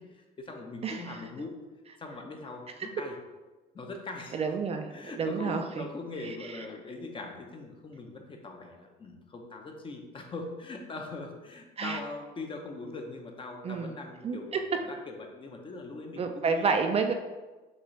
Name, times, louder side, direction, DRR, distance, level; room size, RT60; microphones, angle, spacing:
voice 1, 0.0-1.5 2.0-3.2 3.7-4.4 4.9-16.8, left 3 dB, 30° left, 3 dB, 0.7 m, -41 dB
voice 2, 0.8-1.2 4.3-5.8 6.2-6.3 11.8-12.0 13.6-14.0 14.2-14.4 16.2-17.1, right 5 dB, 35° right, 5 dB, 0.4 m, -29 dB
6.4 x 2.5 x 3.1 m, 1.2 s
cardioid pair, 110°, 17 cm